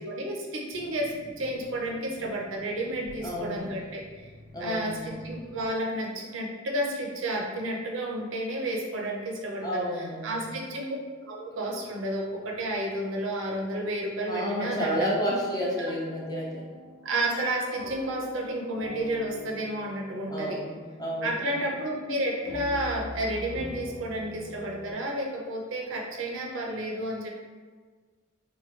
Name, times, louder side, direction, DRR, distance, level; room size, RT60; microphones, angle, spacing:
voice 1, 0.0-4.3 4.6-10.9 11.3-15.1 15.8-15.9 17.0-20.6 21.2-27.3, right 1 dB, 65° right, -1 dB, 0.5 m, -31 dB
sound 1, 0.7-5.7, left 1 dB, 55° left, 0.9 m, -50 dB
voice 2, 3.2-3.7 4.5-5.2 9.6-10.5 14.3-16.6 20.3-21.5, equal, 20° left, -4 dB, 0.4 m, -31 dB
sound 2, 15.0-24.9, left 1 dB, 70° left, 0.6 m, -44 dB
3.0 x 2.2 x 3.0 m, 1.5 s
head